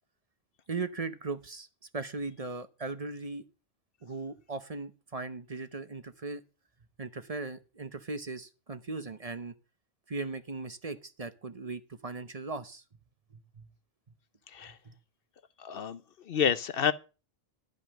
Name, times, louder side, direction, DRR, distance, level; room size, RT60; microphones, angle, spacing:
voice 1, 0.7-1.7 1.9-3.4 4.0-6.4 7.0-9.5 10.1-12.8 13.6-13.7 14.8-14.9, right 3 dB, 40° right, 0.9 m, -38 dB
voice 2, 15.6-16.0 16.3-16.9, left 8 dB, 65° left, 0.9 m, -28 dB
12.0 x 5.3 x 7.5 m
omnidirectional pair, 1.1 m